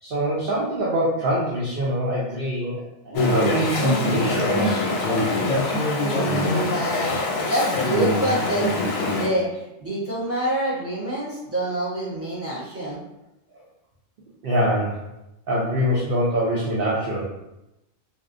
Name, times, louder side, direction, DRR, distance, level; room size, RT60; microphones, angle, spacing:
voice 1, 0.0-2.8 3.1-4.9 14.4-15.0 15.5-17.2, equal, 60° right, -6 dB, 0.6 m, -24 dB
Chatter / Stream, 3.1-9.3, left 2 dB, 85° left, 1.0 m, -23 dB
voice 2, 6.0-9.5 9.8-13.0, right 1 dB, 15° right, -10 dB, 0.8 m, -27 dB
2.5 x 2.0 x 2.4 m, 0.91 s
omnidirectional pair, 1.3 m